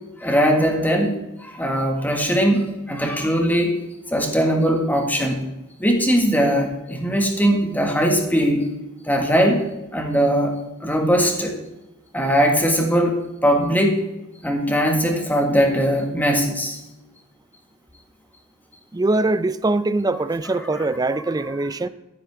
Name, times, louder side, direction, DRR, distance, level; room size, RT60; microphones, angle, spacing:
voice 1, 0.2-3.7 4.1-5.5 5.8-8.7 9.0-9.6 9.9-11.6 12.1-14.0 14.4-16.8, equal, 10° left, 1.7 m, -20 dB
voice 2, 18.9-21.9, right 2 dB, 15° right, 0.4 m, -22 dB
11.5 x 10.5 x 3.5 m
head